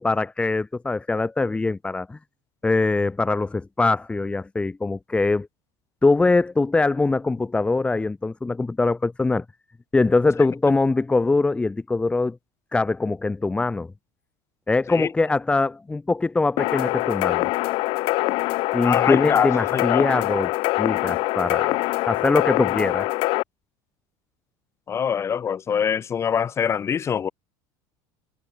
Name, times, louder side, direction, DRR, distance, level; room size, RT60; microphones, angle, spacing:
voice 1, 0.0-2.2 2.6-5.5 6.0-9.4 9.9-12.4 12.7-13.9 14.7-17.5 18.7-23.1, left 3 dB, 10° left, 4.3 m, -22 dB
sound 1, 16.6-23.4, left 22 dB, 55° left, 1.6 m, -24 dB
voice 2, 18.8-20.2 24.9-27.3, left 7 dB, 25° left, 7.4 m, -24 dB
cardioid pair, 150°, 10 cm